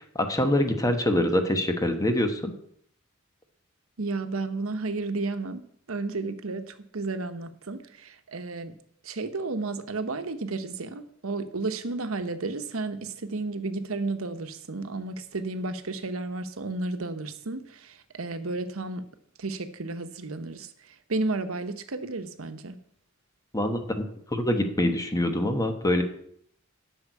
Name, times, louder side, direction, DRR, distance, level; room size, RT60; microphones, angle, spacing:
voice 1, 0.1-2.5 23.5-26.0, left 1 dB, 15° left, 6 dB, 1.1 m, -25 dB
voice 2, 4.0-5.6 5.9-8.8 9.0-19.1 19.4-22.7, right 3 dB, 85° right, 10 dB, 0.9 m, -32 dB
8.3 x 6.3 x 8.2 m, 0.68 s
head